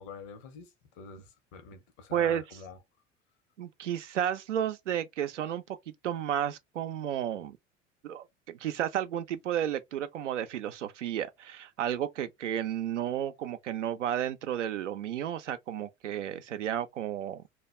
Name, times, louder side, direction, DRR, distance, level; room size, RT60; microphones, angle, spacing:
voice 1, 0.0-2.8, left 5 dB, 60° left, 0.8 m, -47 dB
voice 2, 2.1-2.6 3.6-5.8 6.0-7.6 8.0-17.4, right 10 dB, 85° right, 0.5 m, -32 dB
2.2 x 2.2 x 3.0 m
figure-of-eight pair, 70°, 35 cm